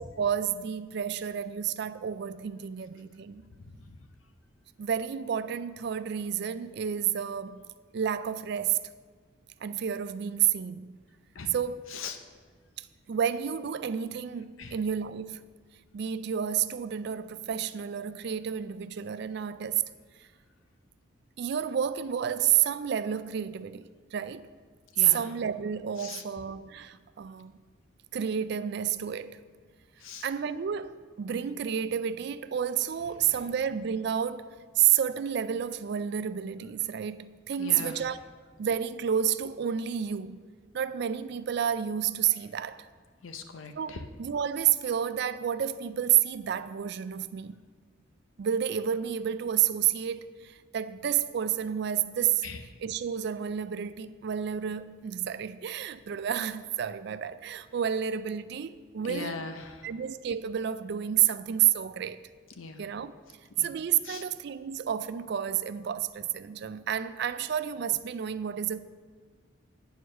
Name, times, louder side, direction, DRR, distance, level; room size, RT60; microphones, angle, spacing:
voice 1, 0.2-3.4 4.8-7.6 7.9-8.8 9.6-11.0 11.5-11.8 12.8-15.4 15.9-19.8 21.4-24.5 25.1-27.5 28.1-29.4 30.2-38.2 38.6-40.4 40.7-42.9 43.8-47.6 48.4-52.4 52.8-59.4 59.8-62.2 62.8-63.1 63.6-68.8, right 9 dB, 55° right, 0.3 m, -30 dB
voice 2, 3.5-4.0 11.3-11.5 11.9-12.2 14.6-14.8 24.9-25.3 26.0-26.2 30.0-30.3 33.2-33.4 37.6-38.0 43.2-44.0 52.4-52.6 59.0-59.9 62.6-62.8 63.6-63.7 64.0-64.2, left 4 dB, 80° left, 0.7 m, -40 dB
9.3 x 4.7 x 6.3 m
head